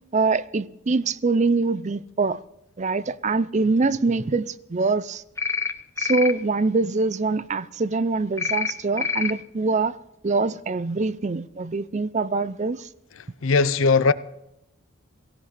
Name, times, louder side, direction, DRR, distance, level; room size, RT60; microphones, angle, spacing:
voice 1, 0.1-2.4 2.8-5.2 6.0-10.0 10.2-12.9, right 3 dB, 30° right, 0.4 m, -24 dB
sound 1, 5.4-5.7 6.0-6.3 8.4-8.7 9.0-9.3, left 5 dB, 15° left, 0.7 m, -26 dB
voice 2, 13.4-14.1, left 4 dB, 60° left, 0.6 m, -18 dB
17.5 x 16.5 x 4.1 m
head